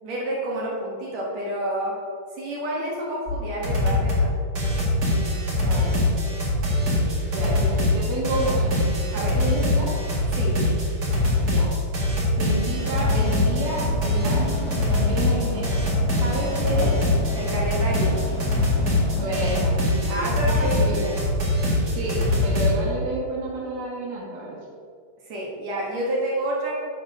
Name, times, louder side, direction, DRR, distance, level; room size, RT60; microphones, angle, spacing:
voice 1, 0.0-1.9 2.4-4.3 7.4-7.6 9.1-9.3 10.3-10.5 17.3-18.2 20.1-21.1 25.3-26.7, right 1 dB, 60° right, -4 dB, 2.2 m, -29 dB
sound 1, 3.3-3.4 3.6-4.3 4.6-22.7, left 2 dB, 35° right, 1.8 m, -23 dB
voice 2, 5.6-5.9 7.3-8.7 9.2-9.9 11.5-11.7 12.4-15.9 16.2-17.0 19.2-20.2 20.6-21.1 22.0-24.6, right 2 dB, 80° right, -5 dB, 3.2 m, -30 dB
sound 2, 12.8-19.7, left 4 dB, 70° left, 2.3 m, -33 dB
8.7 x 4.3 x 6.2 m, 2.1 s
omnidirectional pair, 4.2 m